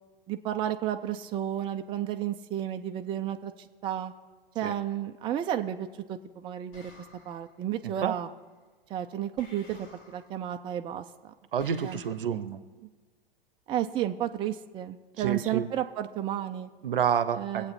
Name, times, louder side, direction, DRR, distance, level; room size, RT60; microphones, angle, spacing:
voice 1, 0.3-4.1 4.5-6.9 7.2-8.3 8.9-11.3 11.8-12.0 12.3-12.4 13.7-16.7 17.3-17.7, right 11 dB, 15° right, 6 dB, 0.5 m, -32 dB
sound 1, 6.7-7.6 9.4-10.4 11.6-12.2, left 2 dB, 35° left, 2.6 m, -53 dB
voice 2, 7.8-8.1 11.5-12.6 15.2-15.7 16.8-17.7, right 8 dB, 65° right, 14 dB, 0.8 m, -29 dB
22.0 x 8.0 x 4.1 m, 1.3 s
figure-of-eight pair, 95°, 29 cm